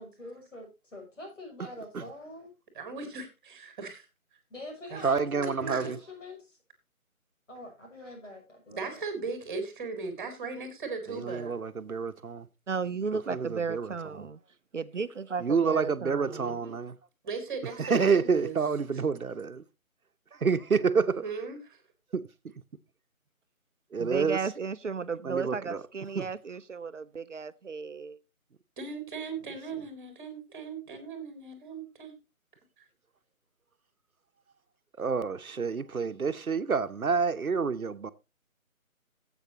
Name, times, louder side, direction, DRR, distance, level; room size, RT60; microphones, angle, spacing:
voice 1, 0.0-2.5 4.5-6.6 7.5-9.0, left 1 dB, 60° left, 6.8 m, -44 dB
voice 2, 2.7-4.0 4.9-5.1 5.7-5.9 8.7-11.6 16.2-16.7 17.2-18.6 20.8-21.8 28.8-32.2, right 4 dB, 15° right, 1.9 m, -38 dB
voice 3, 5.0-6.0 11.1-12.5 13.3-14.2 15.4-16.9 17.8-19.6 20.4-21.2 22.1-22.3 23.9-24.4 25.2-25.8 26.1-26.2 35.0-38.1, right 5 dB, 80° right, 1.0 m, -28 dB
voice 4, 12.7-14.4 14.7-16.6 24.0-28.2, right 5 dB, 60° right, 0.7 m, -34 dB
16.0 x 8.0 x 2.8 m
figure-of-eight pair, 160°, 42 cm